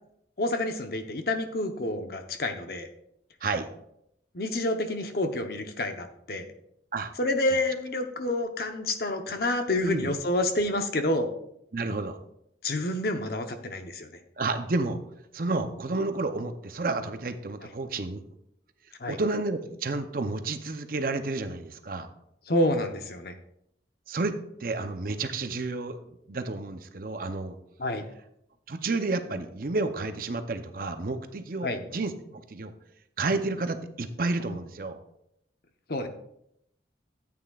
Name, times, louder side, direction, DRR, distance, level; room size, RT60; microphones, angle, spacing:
voice 1, 0.4-2.9 4.3-6.5 7.2-11.3 12.6-14.1 17.6-17.7 19.0-19.2 22.5-23.4 27.8-28.0 31.6-31.8 35.9-36.1, left 1 dB, 55° left, 6 dB, 0.8 m, -28 dB
voice 2, 11.7-12.2 14.4-15.0 15.3-18.2 19.1-22.1 24.1-27.6 28.7-32.7 33.2-35.0, right 3 dB, 50° right, 8 dB, 0.6 m, -31 dB
13.5 x 8.6 x 2.4 m, 0.77 s
head